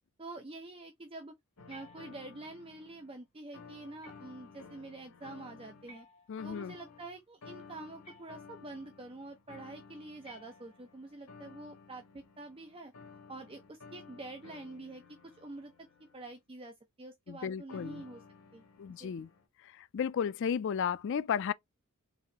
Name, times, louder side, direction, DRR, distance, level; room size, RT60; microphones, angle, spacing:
voice 1, 0.2-1.3 1.7-6.1 6.4-12.9 13.3-15.0 15.4-18.2 18.5-19.1, right 2 dB, 25° right, 0.5 m, -47 dB
sound 1, 1.6-3.2 3.5-5.9 6.4-16.4 17.7-19.5, left 5 dB, 85° left, 1.3 m, -54 dB
sound 2, 1.7-2.6 4.0-4.6 5.9-6.7 8.0-8.8 10.2-11.1, equal, 30° left, 1.5 m, -57 dB
voice 2, 6.3-6.7 17.3-18.0 18.8-19.3 19.9-21.5, left 7 dB, 55° left, 0.3 m, -33 dB
4.1 x 3.0 x 2.8 m
head